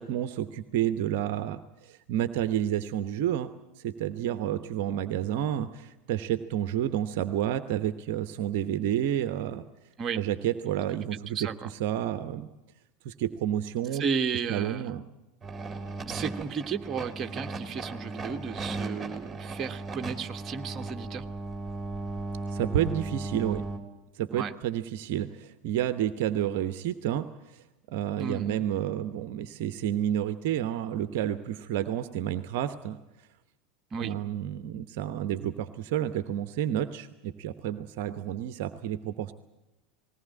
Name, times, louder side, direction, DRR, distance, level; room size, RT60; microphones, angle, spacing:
voice 1, 0.0-3.5 3.8-9.6 10.2-11.4 11.8-12.5 13.0-14.0 14.5-15.0 22.5-23.6 24.1-27.3 27.5-33.0 34.0-39.3, right 11 dB, 55° right, 11 dB, 0.9 m, -30 dB
voice 2, 11.1-11.7 14.0-15.0 16.1-21.3 24.3-24.5 28.2-28.6 33.9-34.2, right 6 dB, 30° right, 7 dB, 1.3 m, -34 dB
sound 1, 15.4-23.8, right 3 dB, 15° right, 3.5 m, -36 dB
20.0 x 18.0 x 9.9 m, 1.0 s
figure-of-eight pair, 80°, 0 cm